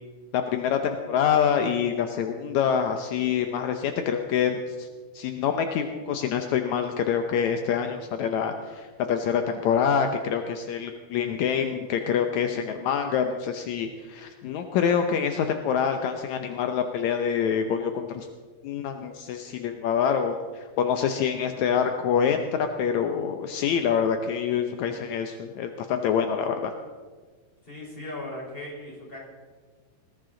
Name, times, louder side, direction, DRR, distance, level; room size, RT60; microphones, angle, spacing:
voice 1, 0.3-4.9 5.1-18.3 18.6-26.7, left 7 dB, 75° left, 6 dB, 1.7 m, -26 dB
voice 2, 27.6-29.2, left 1 dB, 15° left, -2 dB, 4.6 m, -38 dB
20.5 x 15.5 x 3.9 m, 1.5 s
omnidirectional pair, 4.3 m